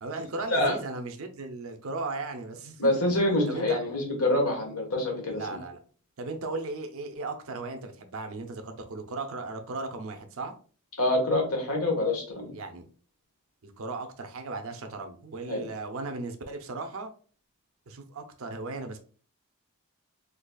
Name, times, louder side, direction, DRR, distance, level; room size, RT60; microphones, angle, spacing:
voice 1, 0.0-3.8 5.3-5.8 6.2-10.6 12.5-12.8 13.6-17.1 17.9-19.0, right 3 dB, 70° right, 6 dB, 0.6 m, -36 dB
voice 2, 2.8-5.6 11.0-12.5 15.5-15.7, left 1 dB, 80° left, 1 dB, 1.3 m, -26 dB
3.9 x 2.8 x 2.3 m, 0.41 s
head